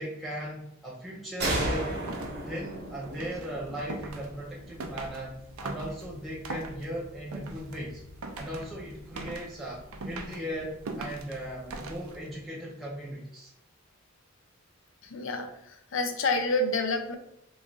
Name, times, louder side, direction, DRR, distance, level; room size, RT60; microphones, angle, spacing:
voice 1, 0.0-2.0 2.5-8.0 8.4-13.5, equal, ahead, -6 dB, 0.5 m, -38 dB
sound 1, 1.4-4.9, right 1 dB, 50° right, 0.9 m, -34 dB
sound 2, 1.9-12.4, right 2 dB, 80° right, 0.5 m, -42 dB
voice 2, 15.0-17.1, left 2 dB, 60° left, 6 dB, 0.5 m, -29 dB
3.0 x 2.4 x 3.7 m, 0.79 s
head